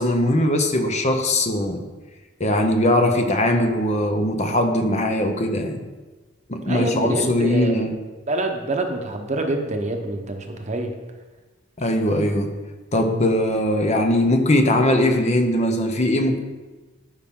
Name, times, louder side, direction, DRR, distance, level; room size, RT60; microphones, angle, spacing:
voice 1, 0.0-1.8 2.4-5.8 6.5-8.0 11.8-12.5 12.9-16.4, left 1 dB, 35° left, 5 dB, 0.8 m, -20 dB
voice 2, 6.6-7.9 8.3-10.9, right 2 dB, 35° right, 4 dB, 0.9 m, -26 dB
12.5 x 5.7 x 3.7 m, 1.2 s
head